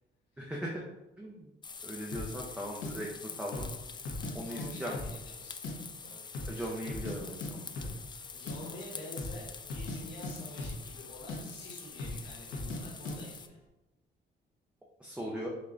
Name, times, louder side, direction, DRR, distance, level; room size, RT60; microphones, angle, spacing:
voice 1, 0.4-0.8 1.2-1.5 1.8-3.1 3.4-3.7 4.3-5.0 6.5-7.9 15.0-15.5, equal, 5° right, -3 dB, 0.7 m, -39 dB
sound 1, 1.6-13.5, left 5 dB, 25° left, 0.3 m, -46 dB
sound 2, 2.1-2.3 2.8-2.9 3.4-3.8 4.0-4.7 4.9-5.7 6.0-6.1 6.3-7.2 7.4-7.5 7.8-8.0 8.3-8.6 9.1-9.4 9.7-11.0 11.3-11.4 12.0-12.2 12.5-12.8 13.1-13.2, left 2 dB, 90° left, 1.1 m, -38 dB
voice 2, 4.3-7.1 8.3-13.6, left 1 dB, 75° left, -4 dB, 1.5 m, -49 dB
5.4 x 2.4 x 3.8 m, 0.94 s
cardioid pair, 100°, 19 cm